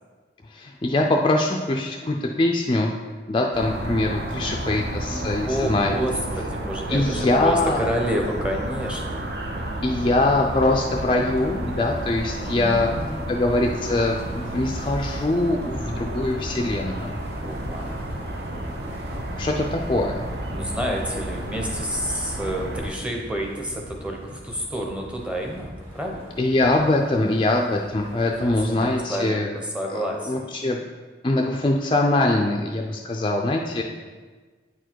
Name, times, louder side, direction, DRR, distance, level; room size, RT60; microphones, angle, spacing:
voice 1, 0.5-2.9 3.3-6.0 6.9-7.8 9.8-12.9 13.3-17.2 19.4-20.3 26.4-29.5 29.9-30.8 31.2-33.8, left 2 dB, 25° left, 1 dB, 0.4 m, -23 dB
sound 1, 3.5-22.9, right 1 dB, 60° right, 0.7 m, -32 dB
voice 2, 4.4-9.2 12.4-13.9 17.4-18.4 19.1-19.4 20.5-26.3 28.2-30.3 33.6-33.8, equal, 5° right, 1 dB, 0.8 m, -30 dB
Wind, 10.5-29.0, equal, 35° right, 1.3 m, -42 dB
8.7 x 4.5 x 4.5 m, 1.4 s
head